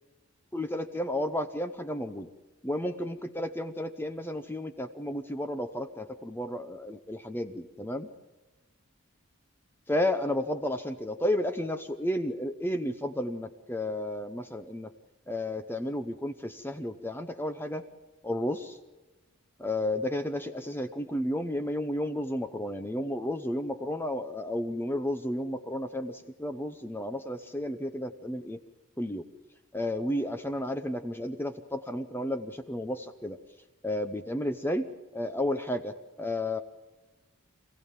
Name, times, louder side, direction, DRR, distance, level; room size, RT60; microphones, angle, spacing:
voice 1, 0.5-2.3 2.6-8.1 9.9-14.9 15.3-17.8 18.2-18.8 19.6-28.6 29.0-29.2 29.7-33.4 33.8-36.6, left 1 dB, 10° left, 9 dB, 0.7 m, -32 dB
26.0 x 16.0 x 7.5 m, 1.1 s
head